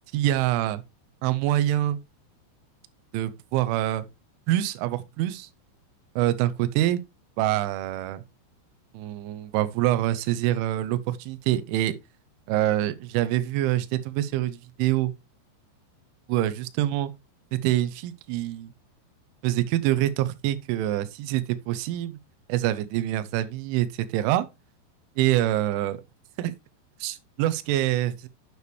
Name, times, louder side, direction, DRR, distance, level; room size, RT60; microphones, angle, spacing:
voice 1, 0.1-0.8 1.2-2.0 3.1-4.0 4.5-5.5 6.2-7.0 7.4-8.2 8.9-12.0 12.5-15.1 16.3-17.1 17.5-18.7 19.4-22.2 22.5-24.5 25.2-26.0 26.4-26.5 27.0-28.3, right 14 dB, 85° right, 3.1 m, -25 dB
9.5 x 6.7 x 3.2 m
omnidirectional pair, 5.5 m